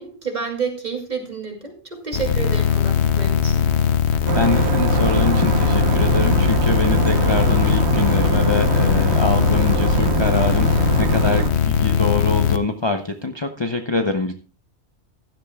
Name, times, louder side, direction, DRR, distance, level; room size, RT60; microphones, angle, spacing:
voice 1, 0.0-3.6, right 5 dB, 40° right, 2 dB, 2.7 m, -29 dB
sound 1, 2.1-12.6, left 8 dB, 70° left, 1.1 m, -19 dB
voice 2, 4.3-14.3, left 3 dB, 25° left, 5 dB, 0.7 m, -24 dB
sound 2, 4.3-11.5, right 5 dB, 70° right, 1.3 m, -23 dB
15.5 x 12.0 x 2.3 m, 0.34 s
omnidirectional pair, 1.2 m